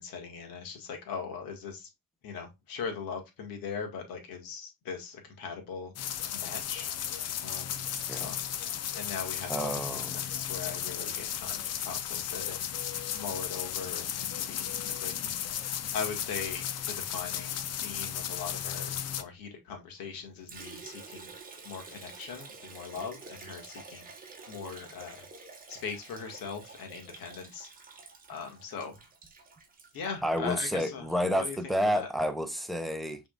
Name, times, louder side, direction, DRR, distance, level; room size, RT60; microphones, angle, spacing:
voice 1, 0.0-1.9 2.2-5.9 6.3-7.8 8.1-8.4 8.9-12.6 13.1-15.5 15.9-21.3 21.6-24.1 24.5-25.3 25.7-27.7 28.3-29.0 29.9-31.1 31.4-31.6 31.9-32.1, left 6 dB, 60° left, 1.8 m, -40 dB
sound 1, 6.0-19.2, left 10 dB, 40° left, 0.6 m, -35 dB
voice 2, 9.5-10.2 30.2-33.2, equal, ahead, 0.6 m, -30 dB
Liquid, 20.5-30.6, right 4 dB, 20° right, 1.1 m, -49 dB
5.9 x 3.6 x 2.4 m
cardioid pair, 125°, 39 cm